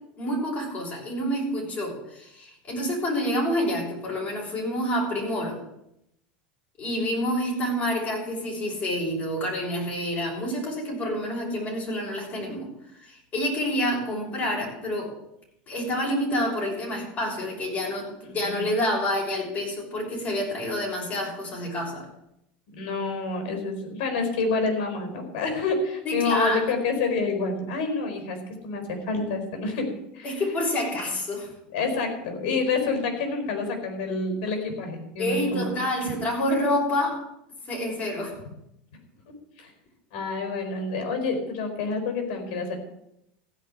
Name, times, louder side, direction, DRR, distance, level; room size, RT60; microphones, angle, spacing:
voice 1, 0.2-5.6 6.8-12.7 13.0-15.1 15.7-22.1 26.0-26.6 30.2-31.5 35.2-37.2 37.7-38.4, left 1 dB, 30° left, -2 dB, 6.0 m, -28 dB
voice 2, 18.2-18.7 22.7-28.4 28.6-30.4 31.7-36.1 39.6-39.7 40.1-42.8, left 3 dB, 70° left, 5 dB, 4.5 m, -28 dB
15.5 x 5.4 x 8.8 m, 0.81 s
supercardioid pair, 120°, 5 cm